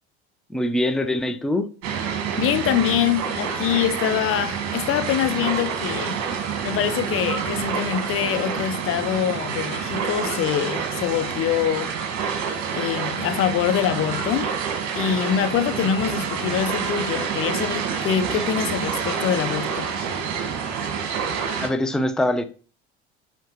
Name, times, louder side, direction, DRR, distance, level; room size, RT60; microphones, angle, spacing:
voice 1, 0.5-1.7 21.6-22.4, left 1 dB, ahead, 0.7 m, -23 dB
sound 1, 1.8-21.7, right 6 dB, 50° right, 1.8 m, -28 dB
voice 2, 2.4-6.2 6.6-11.9 12.2-12.3 12.7-14.5 15.0-19.9, left 10 dB, 40° left, 0.6 m, -24 dB
9.3 x 4.5 x 3.1 m
hypercardioid pair, 75°, 34 cm